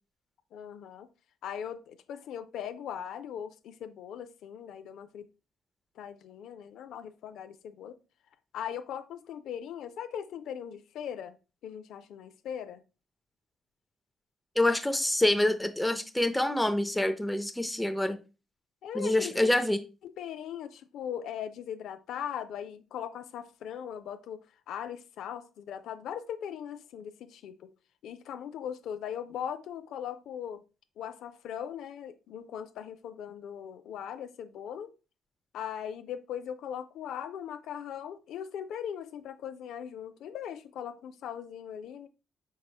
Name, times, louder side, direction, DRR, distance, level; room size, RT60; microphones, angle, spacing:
voice 1, 0.5-1.1 1.4-5.3 6.0-8.0 8.5-11.4 11.6-12.8 18.8-19.5 20.0-27.7 28.0-30.6 31.0-34.9 35.5-42.1, left 9 dB, 80° left, 0.3 m, -39 dB
voice 2, 14.6-18.2 18.9-19.8, left 1 dB, 5° left, 0.5 m, -26 dB
4.7 x 4.2 x 2.2 m
cardioid pair, 90°, 0 cm